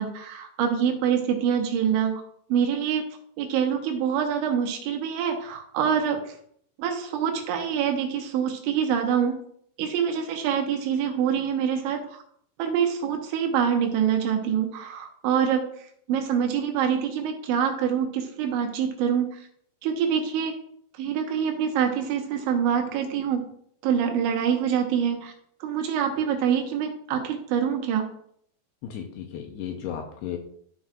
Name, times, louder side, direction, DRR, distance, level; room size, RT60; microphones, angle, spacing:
voice 1, 0.0-2.2 2.5-3.0 3.4-6.2 6.8-9.4 9.8-12.0 12.6-15.6 16.1-19.4 19.8-20.6 21.0-23.4 23.8-25.3 25.6-28.1, right 8 dB, 85° right, 3 dB, 3.5 m, -25 dB
voice 2, 28.8-30.4, left 9 dB, 80° left, 3 dB, 2.5 m, -34 dB
12.5 x 5.9 x 2.4 m, 0.66 s
omnidirectional pair, 5.2 m